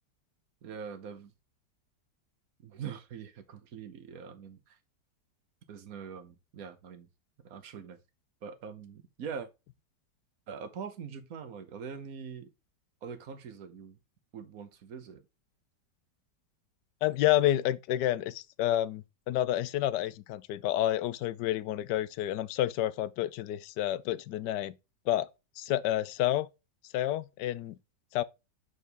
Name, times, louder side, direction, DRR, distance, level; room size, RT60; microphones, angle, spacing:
voice 1, 0.6-1.3 2.6-4.8 5.7-7.1 7.4-8.0 8.4-9.5 10.5-12.5 13.0-14.0 14.3-15.2, right 6 dB, 55° right, 1.4 m, -43 dB
voice 2, 17.0-24.7 25.1-25.3 25.6-26.5 26.9-27.8 28.1-28.2, left 13 dB, 75° left, 1.2 m, -29 dB
6.4 x 5.1 x 3.5 m
omnidirectional pair, 1.9 m